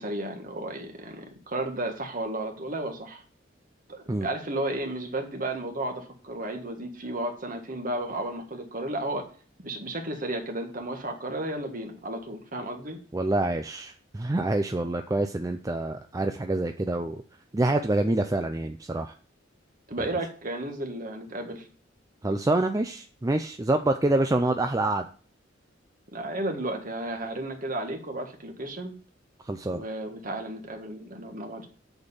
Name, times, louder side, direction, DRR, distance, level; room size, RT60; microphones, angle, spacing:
voice 1, 0.0-3.2 3.9-9.2 9.6-13.0 19.9-21.6 26.1-28.9 29.7-31.7, right 1 dB, 45° right, 4 dB, 1.6 m, -33 dB
voice 2, 13.1-17.2 17.5-19.1 20.0-20.1 22.2-25.1 29.5-29.8, right 2 dB, 20° right, 6 dB, 0.4 m, -26 dB
7.9 x 4.4 x 7.0 m, 0.41 s
head